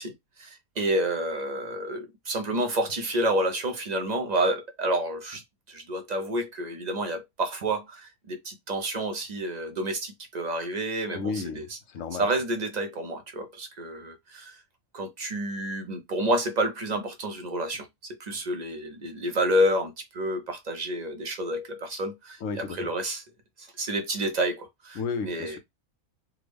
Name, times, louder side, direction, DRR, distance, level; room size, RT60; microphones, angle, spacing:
voice 1, 0.0-5.4 5.7-11.8 12.2-14.6 14.9-17.9 18.2-23.2 23.6-25.6, right 1 dB, 55° right, 0.4 m, -29 dB
voice 2, 11.1-12.3 22.4-22.9 25.0-25.6, left 5 dB, 70° left, 0.9 m, -33 dB
3.5 x 2.0 x 3.3 m
omnidirectional pair, 1.5 m